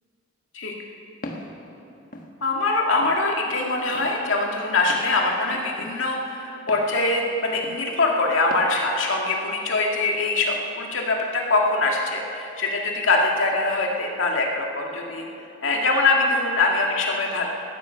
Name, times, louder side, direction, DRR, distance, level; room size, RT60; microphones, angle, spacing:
Walk footsteps, 1.2-1.5 2.1-2.3 3.0-3.2 3.9-4.1 4.9-5.1 5.8-5.9 6.7-6.9 7.6-7.8 8.5-8.7, left 1 dB, 45° left, 1.4 m, -37 dB
voice 1, 2.4-15.3 15.6-17.5, left 3 dB, 90° left, 0 dB, 2.1 m, -23 dB
15.0 x 13.5 x 5.8 m, 2.7 s
head